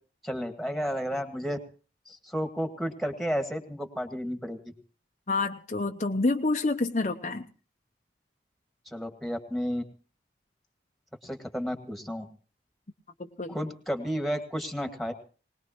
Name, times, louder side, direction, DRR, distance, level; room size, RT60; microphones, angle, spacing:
voice 1, 0.2-1.6 2.1-4.7 8.9-9.8 11.2-12.3 13.5-15.1, equal, ahead, 5 dB, 1.8 m, -32 dB
voice 2, 5.3-7.5 13.2-13.6, left 3 dB, 40° left, 5 dB, 0.7 m, -28 dB
20.5 x 20.0 x 3.0 m, 0.38 s
head